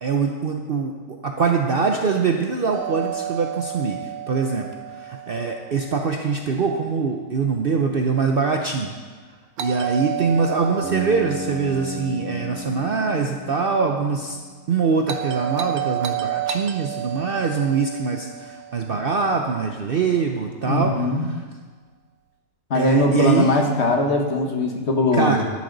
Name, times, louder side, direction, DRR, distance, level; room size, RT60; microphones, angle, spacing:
voice 1, 0.0-8.9 9.6-14.4 14.7-21.4 22.7-23.5 25.1-25.4, right 5 dB, 50° right, 3 dB, 0.7 m, -23 dB
Doorbell, 2.7-6.7 9.6-13.8 15.1-19.5, right 11 dB, 80° right, 1.2 m, -32 dB
Bass guitar, 10.8-14.8, left 1 dB, 5° right, 1.1 m, -35 dB
voice 2, 20.7-21.3 22.7-25.4, left 1 dB, 50° left, 2 dB, 1.5 m, -20 dB
12.0 x 11.0 x 3.9 m, 1.4 s
omnidirectional pair, 1.6 m